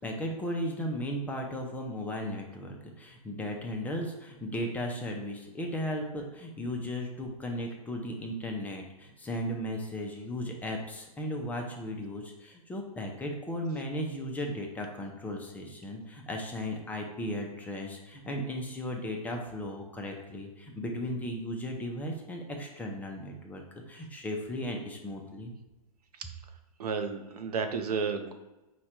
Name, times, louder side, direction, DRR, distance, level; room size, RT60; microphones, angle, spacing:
voice 1, 0.0-23.6 23.9-25.5, equal, 10° left, 1 dB, 0.4 m, -36 dB
voice 2, 26.8-28.3, right 5 dB, 85° right, 7 dB, 0.6 m, -32 dB
4.7 x 2.2 x 4.2 m, 1.0 s
hypercardioid pair, 140°, 19 cm